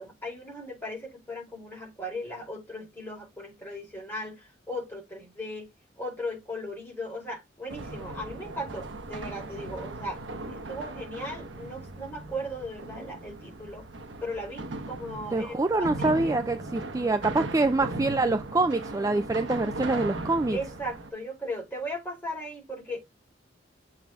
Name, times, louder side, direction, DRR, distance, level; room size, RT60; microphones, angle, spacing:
voice 1, 0.0-5.7 6.0-10.2 10.5-13.9 14.2-16.3 20.5-23.0, equal, 10° left, 4.4 m, -37 dB
sound 1, 7.7-21.1, right 2 dB, 90° right, 1.0 m, -38 dB
voice 2, 15.3-20.6, right 2 dB, 20° right, 0.4 m, -25 dB
7.2 x 4.0 x 3.5 m
head